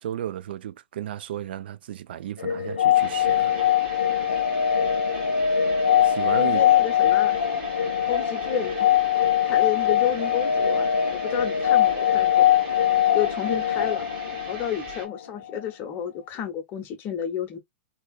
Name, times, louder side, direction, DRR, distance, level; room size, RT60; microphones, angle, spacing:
voice 1, 0.0-3.5 6.0-6.6, right 11 dB, 65° right, 0.4 m, -34 dB
sound 1, 2.4-15.2, left 9 dB, 90° left, 0.3 m, -22 dB
sound 2, 2.9-15.1, right 4 dB, 45° right, 1.4 m, -42 dB
voice 2, 6.4-7.4 8.1-8.9 9.4-12.5 13.1-14.0 14.5-17.6, left 9 dB, 35° left, 0.8 m, -31 dB
2.8 x 2.4 x 2.3 m
hypercardioid pair, 105°, 6 cm